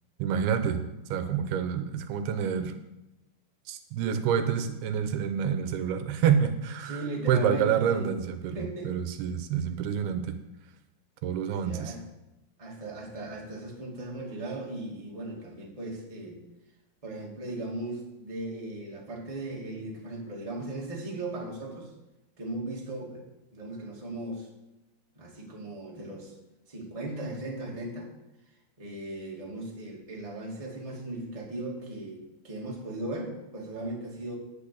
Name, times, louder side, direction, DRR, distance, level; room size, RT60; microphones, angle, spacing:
voice 1, 0.2-0.8 1.1-2.8 3.7-7.0 7.3-8.6 8.9-10.4 11.2-11.9, right 8 dB, 85° right, 9 dB, 2.8 m, -27 dB
voice 2, 6.8-8.1 8.5-8.9 11.6-12.0 12.6-16.4 17.0-21.9 22.4-23.2 23.5-24.5 25.2-26.3 26.7-28.1 28.8-34.3, right 2 dB, 10° right, -2 dB, 1.7 m, -37 dB
10.5 x 5.7 x 8.5 m, 0.95 s
omnidirectional pair, 4.4 m